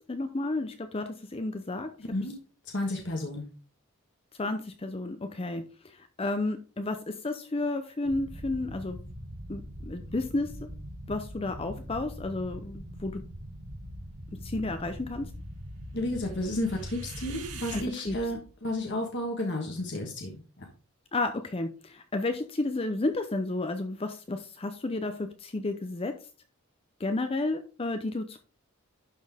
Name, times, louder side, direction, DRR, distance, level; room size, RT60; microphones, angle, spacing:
voice 1, 0.1-1.9 4.4-9.0 9.5-10.7 11.1-13.2 14.3-15.3 17.7-18.2 21.1-26.1 27.0-28.4, left 2 dB, 25° left, 8 dB, 0.6 m, -32 dB
voice 2, 2.7-3.5 15.9-20.3 20.6-20.7, left 1 dB, 55° left, 1 dB, 1.4 m, -32 dB
sound 1, 8.0-17.8, equal, 85° right, 2.0 m, -42 dB
11.5 x 4.3 x 3.5 m, 0.36 s
head